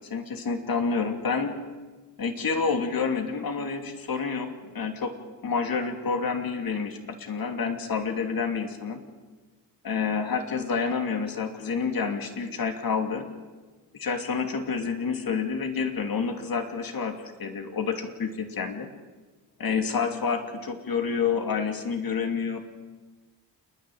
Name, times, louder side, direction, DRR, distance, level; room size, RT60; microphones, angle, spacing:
voice 1, 0.1-1.6 2.2-5.1 5.4-9.0 9.8-13.3 13.9-18.9 19.6-22.6, left 5 dB, 55° left, 6 dB, 2.9 m, -28 dB
29.0 x 10.5 x 9.4 m, 1.3 s
supercardioid pair, 55°, 41 cm